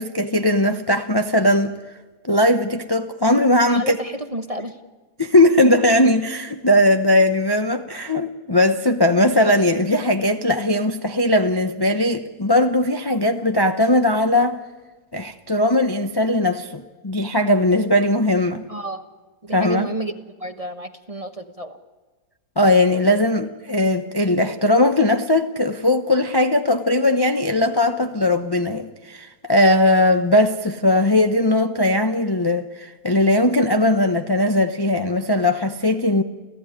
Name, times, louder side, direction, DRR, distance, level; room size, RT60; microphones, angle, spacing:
voice 1, 0.0-1.7 2.2-4.0 5.2-14.6 15.1-18.6 19.5-19.9 22.6-36.2, left 1 dB, 20° left, 0.7 m, -19 dB
voice 2, 3.7-4.8 18.7-19.0 19.4-21.8, right 1 dB, 25° right, 1.1 m, -30 dB
29.5 x 15.5 x 9.9 m
omnidirectional pair, 1.8 m